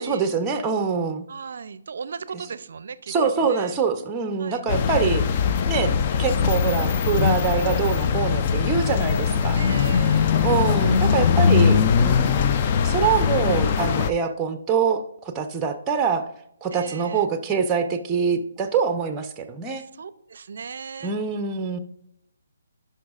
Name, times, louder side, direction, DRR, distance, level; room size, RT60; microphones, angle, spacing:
voice 1, 0.0-1.2 3.1-5.2 5.7-9.6 10.4-12.5 12.8-16.3 16.6-19.8 21.0-21.8, right 6 dB, 10° right, 8 dB, 0.6 m, -24 dB
voice 2, 1.3-3.1 3.4-3.8 4.4-4.6 9.6-10.5 16.7-17.3 19.8-21.1, right 6 dB, 60° right, 16 dB, 0.5 m, -37 dB
sound 1, 4.7-14.1, left 7 dB, 30° left, 0.4 m, -21 dB
11.0 x 5.6 x 2.4 m, 0.74 s
hypercardioid pair, 160°, 0 cm